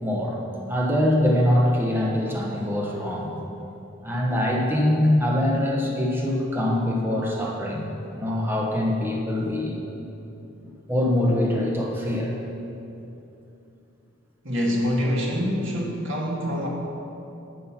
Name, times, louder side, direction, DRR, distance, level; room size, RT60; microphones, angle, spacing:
voice 1, 0.0-0.4 0.7-3.3 4.0-7.9 8.2-9.7 10.6-12.3, left 1 dB, 10° right, -2 dB, 1.1 m, -23 dB
voice 2, 14.4-16.7, equal, 65° right, -2 dB, 1.8 m, -25 dB
11.0 x 6.6 x 5.8 m, 2.9 s
head